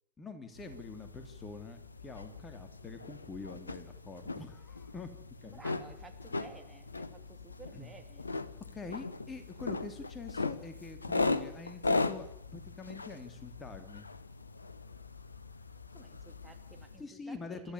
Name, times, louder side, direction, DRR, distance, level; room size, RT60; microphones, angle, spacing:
voice 1, 0.2-5.1 5.4-5.6 7.7-7.9 8.7-14.1 17.0-17.7, left 4 dB, 15° left, 8 dB, 2.7 m, -45 dB
sound 1, 0.5-17.0, left 3 dB, 75° left, 1.0 m, -38 dB
voice 2, 5.4-8.3 15.9-17.7, right 3 dB, 10° right, 4 dB, 2.5 m, -54 dB
28.5 x 14.0 x 9.9 m, 0.76 s
figure-of-eight pair, 90°, 0 cm